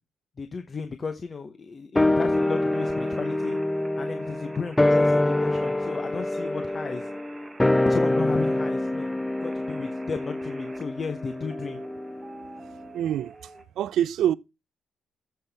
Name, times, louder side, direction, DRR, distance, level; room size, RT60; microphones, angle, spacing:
voice 1, 0.4-3.6 4.0-7.1 7.8-11.8, left 5 dB, 35° left, 0.8 m, -34 dB
sound 1, 2.0-12.6 12.8-12.9, left 1 dB, 10° left, 0.5 m, -25 dB
sound 2, 2.3-13.6, right 3 dB, 25° right, 1.0 m, -49 dB
voice 2, 12.9-13.3 13.8-14.4, right 11 dB, 75° right, 0.4 m, -24 dB
13.0 x 5.7 x 3.4 m
cardioid pair, 90°, 0 cm